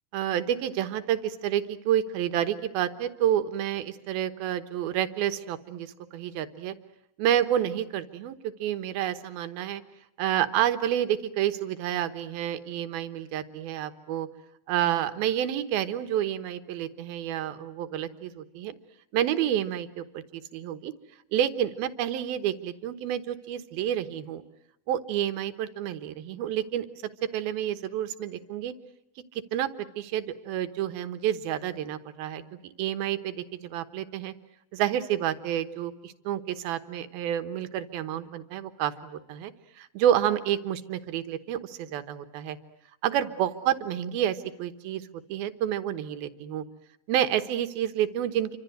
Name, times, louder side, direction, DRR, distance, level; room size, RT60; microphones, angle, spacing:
voice 1, 0.1-6.7 7.2-9.8 10.2-14.3 14.7-18.7 19.1-20.9 21.3-24.4 24.9-26.9 27.3-28.7 29.5-34.3 34.7-42.6 43.0-46.6 47.1-48.6, right 11 dB, 85° right, 10 dB, 3.1 m, -29 dB
28.0 x 25.5 x 8.0 m, 0.80 s
omnidirectional pair, 4.2 m